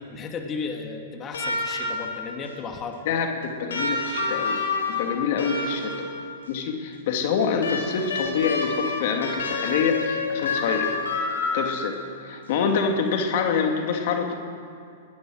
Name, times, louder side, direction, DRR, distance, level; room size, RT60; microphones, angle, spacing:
voice 1, 0.0-3.0, left 4 dB, 25° left, 3 dB, 2.6 m, -34 dB
sound 1, 1.3-2.3 3.7-6.3 7.6-12.1 13.4-13.5, left 3 dB, 80° left, 5.0 m, -28 dB
voice 2, 3.1-5.9 6.5-11.0 11.5-12.0 12.2-14.3, left 6 dB, 55° left, 3 dB, 2.6 m, -26 dB
20.5 x 19.5 x 6.5 m, 2.4 s
hypercardioid pair, 120°, 0 cm